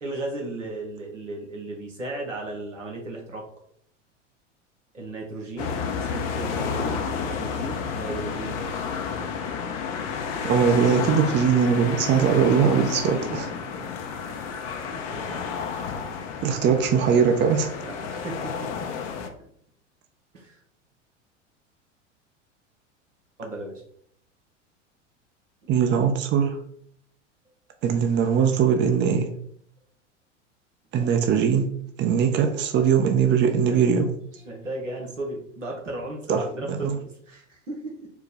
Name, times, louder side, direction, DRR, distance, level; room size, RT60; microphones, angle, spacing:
voice 1, 0.0-3.4 4.9-8.6 13.3-13.4 13.8-13.9 14.2-14.4 14.9-15.5 17.8-18.9 19.4-19.5 20.3-20.6 23.4-23.8 25.6-25.7 27.5-27.6 30.9-31.1 33.6-34.0 34.3-38.1, right 2 dB, 90° right, -1 dB, 1.3 m, -36 dB
sound 1, 5.6-19.3, left 6 dB, 55° left, 0.8 m, -31 dB
voice 2, 10.4-13.5 16.4-17.7 25.7-26.6 27.8-29.3 30.9-31.7 32.0-34.1 36.3-36.4 36.7-36.9, right 7 dB, 30° right, 5 dB, 0.6 m, -21 dB
4.6 x 2.2 x 4.1 m, 0.65 s
hypercardioid pair, 85°, 36 cm